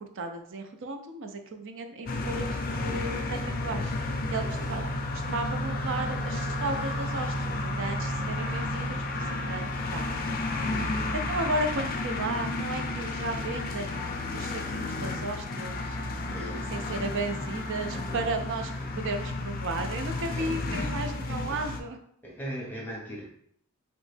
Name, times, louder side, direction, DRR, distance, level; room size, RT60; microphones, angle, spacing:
voice 1, 0.2-3.9 4.3-4.9 5.3-9.7 9.9-10.1 11.3-16.0 16.4-18.7 19.0-22.0, right 2 dB, 60° right, 6 dB, 0.5 m, -34 dB
sound 1, 2.1-21.8, left 2 dB, 40° left, 0.4 m, -32 dB
voice 2, 4.4-4.8 10.6-11.1 16.3-18.5 18.8-19.2 20.3-20.6 21.4-21.7 22.2-23.2, equal, 10° left, -3 dB, 0.8 m, -42 dB
3.1 x 3.1 x 3.3 m, 0.67 s
head